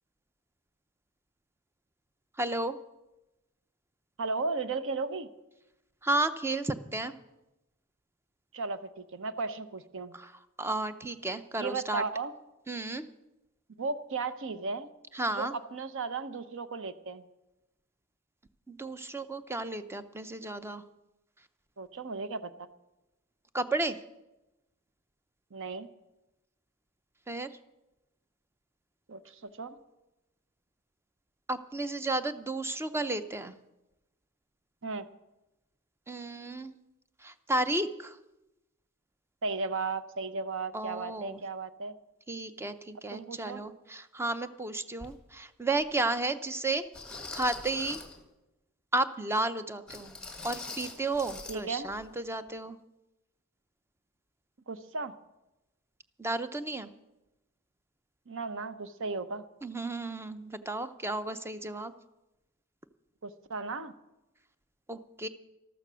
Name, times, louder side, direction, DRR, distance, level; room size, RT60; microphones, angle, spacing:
voice 1, 2.4-2.8 6.0-7.1 10.1-10.3 10.6-12.0 12.7-13.1 15.1-15.5 18.7-20.8 23.5-24.0 27.3-27.5 31.5-33.5 36.1-36.8 37.2-38.2 40.7-41.4 42.3-46.8 47.3-48.0 48.9-50.1 50.4-52.8 56.2-56.9 59.6-61.9 64.9-65.3, right 2 dB, 10° right, 11 dB, 0.6 m, -33 dB
voice 2, 4.2-5.3 8.5-10.1 11.6-12.3 13.8-14.9 15.3-17.2 21.8-22.7 25.5-25.9 29.1-29.8 34.8-35.1 39.4-41.9 43.1-43.6 51.5-51.9 54.7-55.1 58.3-59.4 63.2-63.9, right 4 dB, 60° right, 13 dB, 0.8 m, -35 dB
sound 1, 45.0-45.1 45.8-45.9 46.9-48.2 49.9-51.6 51.9-52.0 52.5-52.6, left 3 dB, 5° left, 1.6 m, -43 dB
13.5 x 13.0 x 6.2 m, 0.98 s
head